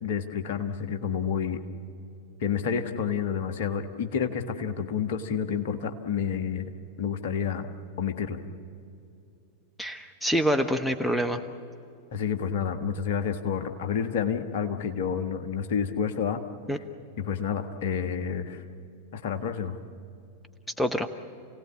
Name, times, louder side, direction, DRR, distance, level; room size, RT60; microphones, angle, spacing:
voice 1, 0.0-1.6 2.4-6.7 7.0-7.7 8.0-8.4 12.1-16.4 17.2-18.6 19.1-19.8, left 7 dB, 55° left, 7 dB, 1.5 m, -29 dB
voice 2, 9.8-11.4 16.7-16.8 20.8-21.1, equal, 5° left, 9 dB, 1.0 m, -26 dB
29.0 x 17.5 x 8.6 m, 2.6 s
figure-of-eight pair, 90°, 0 cm